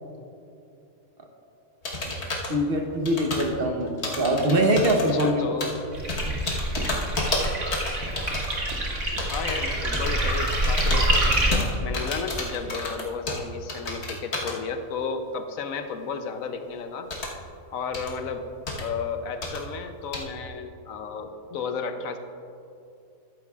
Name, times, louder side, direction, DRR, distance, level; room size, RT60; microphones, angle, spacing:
sound 1, 1.8-2.6 3.1-3.6 4.0-5.2 5.6-5.8 6.1-8.7 9.1-9.6 9.9-13.4 13.7-14.6 17.1-17.3 17.9-18.1 18.7-18.8 19.4-19.6 20.1-20.2, left 2 dB, 55° left, 1.6 m, -30 dB
voice 1, 2.5-5.5, right 1 dB, 45° right, 2 dB, 1.1 m, -23 dB
voice 2, 5.1-5.7 9.3-17.1 17.7-18.4 18.8-22.2, left 5 dB, 85° left, 7 dB, 1.1 m, -33 dB
sound 2, 5.9-11.5, right 1 dB, 60° right, 2.1 m, -26 dB
14.0 x 11.5 x 2.4 m, 2.6 s
omnidirectional pair, 1.4 m